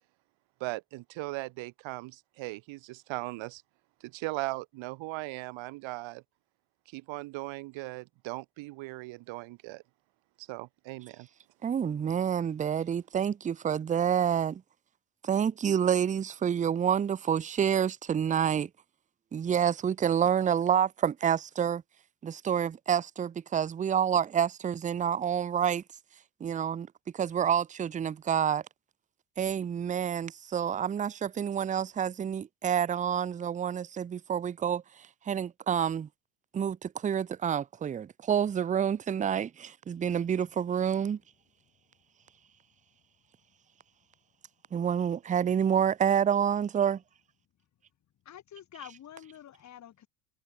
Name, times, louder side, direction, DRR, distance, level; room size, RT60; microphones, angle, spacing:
voice 1, 0.6-3.6 4.0-6.2 6.9-9.8 10.4-11.3, right 22 dB, 70° right, 3.0 m, -38 dB
voice 2, 11.6-14.6 15.2-18.7 19.3-21.8 22.2-25.8 26.4-26.9 27.1-28.6 29.4-34.8 35.3-36.1 36.5-41.2 44.7-47.0, right 8 dB, 15° right, 0.5 m, -28 dB
voice 3, 48.2-50.1, left 11 dB, 35° left, 4.3 m, -48 dB
cardioid pair, 175°, 47 cm